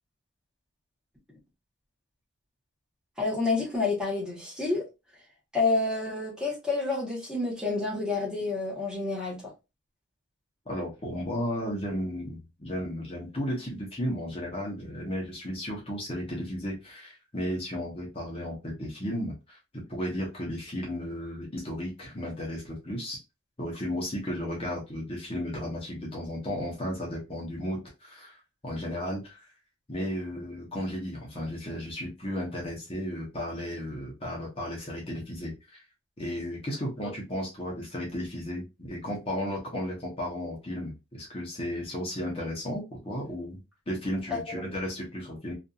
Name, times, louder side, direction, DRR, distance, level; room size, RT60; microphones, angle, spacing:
voice 1, 3.2-4.8 5.5-9.4 44.3-44.6, left 3 dB, 5° right, 1.0 m, -29 dB
voice 2, 10.7-19.6 19.9-23.2 23.6-28.4 28.6-29.4 29.9-35.8 36.2-43.6 43.9-45.5, equal, 25° left, 0.8 m, -34 dB
2.7 x 2.5 x 2.4 m
head